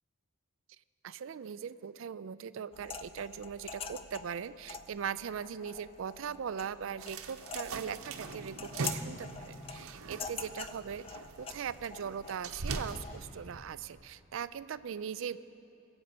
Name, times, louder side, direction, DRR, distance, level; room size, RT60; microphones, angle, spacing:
voice 1, 1.0-15.4, right 7 dB, 65° right, 16 dB, 0.4 m, -40 dB
sound 1, 2.7-13.2, left 5 dB, 25° left, 0.4 m, -45 dB
sound 2, 7.0-13.0, right 3 dB, 85° right, 0.8 m, -41 dB
21.0 x 8.0 x 5.5 m, 2.9 s
head